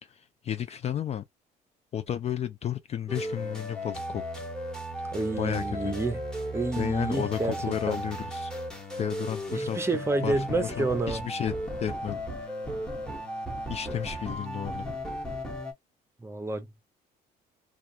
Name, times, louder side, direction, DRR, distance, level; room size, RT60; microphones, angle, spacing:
voice 1, 0.0-1.2 1.9-4.2 5.3-6.0 6.8-8.5 9.0-9.8 10.2-11.5 11.8-12.5 13.7-14.9, left 9 dB, 40° left, 0.4 m, -33 dB
sound 1, 3.1-15.7, equal, 5° left, 1.1 m, -35 dB
voice 2, 5.1-6.2 6.5-8.0 9.5-11.2 16.2-16.8, right 3 dB, 15° right, 0.7 m, -29 dB
2.4 x 2.3 x 2.8 m
cardioid pair, 110°, 17 cm